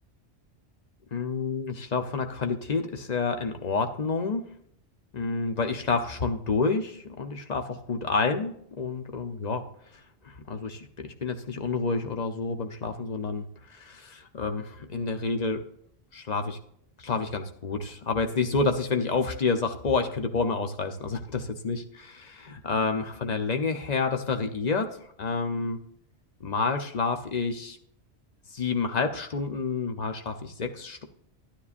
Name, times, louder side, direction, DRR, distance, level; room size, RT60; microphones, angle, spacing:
voice 1, 1.1-4.4 5.1-9.6 10.2-15.6 16.1-16.6 17.0-24.9 25.2-25.8 26.4-27.8 28.5-31.0, left 4 dB, 40° left, 6 dB, 0.8 m, -29 dB
11.5 x 9.8 x 2.5 m, 0.66 s
omnidirectional pair, 1.2 m